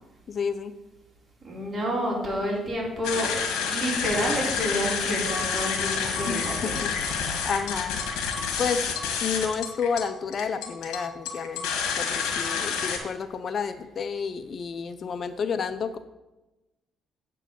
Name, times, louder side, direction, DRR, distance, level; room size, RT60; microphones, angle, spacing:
voice 1, 0.3-0.7 6.3-6.9 7.4-8.0 8.6-8.9 9.2-11.6 12.0-16.0, left 6 dB, 50° left, 11 dB, 0.5 m, -30 dB
voice 2, 1.4-3.3 3.7-7.1, equal, 35° right, -2 dB, 3.5 m, -29 dB
sound 1, 3.0-13.0, left 6 dB, 85° left, 1.7 m, -29 dB
8.1 x 4.6 x 7.2 m, 1.0 s
cardioid pair, 90°, 0 cm